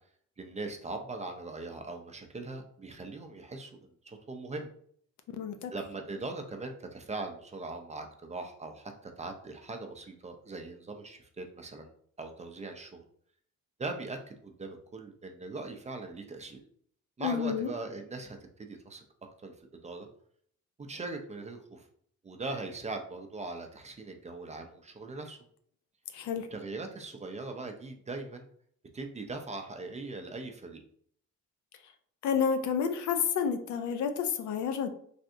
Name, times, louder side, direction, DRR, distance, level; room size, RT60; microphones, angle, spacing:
voice 1, 0.4-4.7 5.7-11.9 12.2-13.0 13.8-16.6 17.2-19.0 19.4-20.1 20.8-21.9 22.2-25.4 26.5-28.5 28.9-30.8, right 3 dB, 25° right, 5 dB, 0.4 m, -40 dB
voice 2, 5.4-5.7 17.2-17.7 26.1-26.5 32.2-34.9, left 7 dB, 70° left, 7 dB, 0.5 m, -30 dB
3.3 x 2.6 x 2.5 m, 0.62 s
cardioid pair, 90°, 30 cm